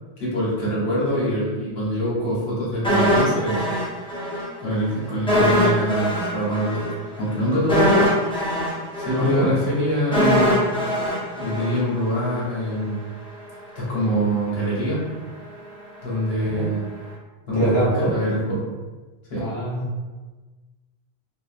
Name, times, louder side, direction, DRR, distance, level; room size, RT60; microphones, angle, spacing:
voice 1, 0.2-3.7 4.6-8.1 9.0-10.7 11.4-13.0 13.7-15.0 16.0-16.9 17.5-18.7 19.3-19.5, equal, 70° left, -7 dB, 1.1 m, -24 dB
sound 1, 2.8-4.5 4.7-4.9 5.3-12.3 12.6-12.8, equal, 10° left, 0.3 m, -22 dB
voice 2, 9.1-9.5 16.5-16.7 17.5-18.1 19.4-19.8, right 1 dB, 30° left, -9 dB, 0.8 m, -23 dB
2.8 x 2.0 x 2.4 m, 1.3 s
omnidirectional pair, 1.1 m